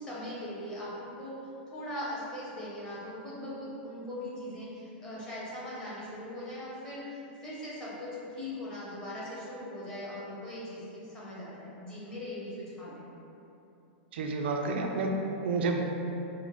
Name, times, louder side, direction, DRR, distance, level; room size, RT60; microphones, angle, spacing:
voice 1, 0.0-1.3 1.7-13.1, left 1 dB, 15° left, -8 dB, 0.8 m, -40 dB
voice 2, 14.1-15.8, right 3 dB, 70° right, 2 dB, 0.4 m, -30 dB
5.6 x 2.1 x 3.1 m, 2.9 s
supercardioid pair, 165°, 6 cm